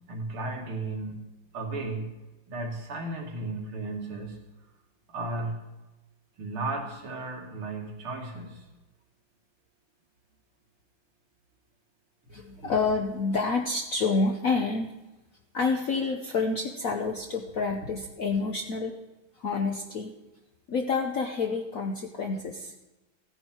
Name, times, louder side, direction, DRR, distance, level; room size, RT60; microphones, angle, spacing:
voice 1, 0.1-1.3 1.5-2.1 2.5-4.4 5.1-5.6 6.4-8.6 12.3-12.7, right 2 dB, 75° right, 0 dB, 2.9 m, -35 dB
voice 2, 12.3-14.9 15.5-18.9 19.4-20.1 20.7-22.7, left 4 dB, 60° left, 3 dB, 0.9 m, -28 dB
15.5 x 9.9 x 4.5 m, 1.1 s
omnidirectional pair, 2.4 m